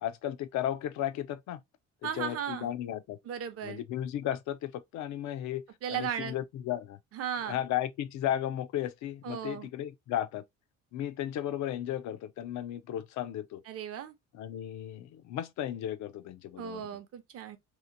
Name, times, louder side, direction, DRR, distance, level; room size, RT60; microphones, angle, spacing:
voice 1, 0.0-1.6 2.0-3.2 3.6-7.0 7.5-10.4 10.9-13.6 14.3-16.9, left 11 dB, 75° left, 0.5 m, -35 dB
voice 2, 2.0-2.7 3.2-3.8 5.8-6.4 7.1-7.6 9.2-9.7 13.7-14.1 16.6-17.6, right 9 dB, 55° right, 0.6 m, -36 dB
2.8 x 2.5 x 2.6 m
cardioid pair, 130°, 29 cm